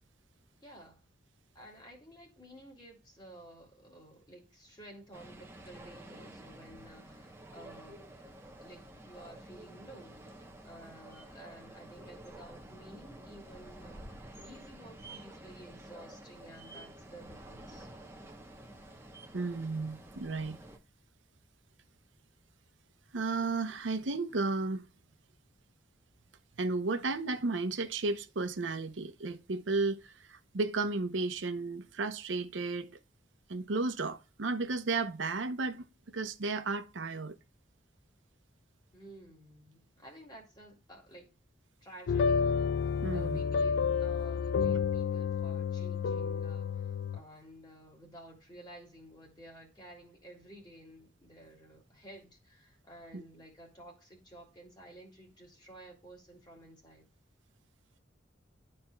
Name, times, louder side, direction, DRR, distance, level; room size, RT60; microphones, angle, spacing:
voice 1, 0.6-1.0 1.5-8.2 8.6-17.9 38.9-41.3 41.8-42.4 43.1-57.1, right 1 dB, 25° left, 2.3 m, -53 dB
sound 1, 5.1-20.8, right 1 dB, 15° right, 0.9 m, -50 dB
voice 2, 19.3-20.6 23.1-24.8 26.6-32.9 33.5-35.8 36.1-37.3 43.0-43.4 53.1-53.2, right 3 dB, 85° right, 0.7 m, -33 dB
sound 2, 42.1-47.2, left 6 dB, 65° left, 0.3 m, -30 dB
11.5 x 4.3 x 2.3 m
head